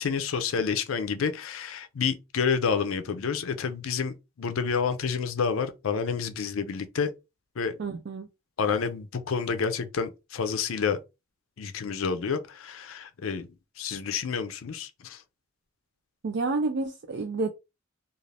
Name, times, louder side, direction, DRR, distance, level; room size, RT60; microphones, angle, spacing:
voice 1, 0.0-7.1 7.6-7.7 8.6-11.0 11.6-13.5 13.8-15.2, left 6 dB, 75° left, 0.5 m, -29 dB
voice 2, 7.8-8.3 16.2-17.5, right 3 dB, 55° right, 0.4 m, -29 dB
2.5 x 2.4 x 3.2 m
head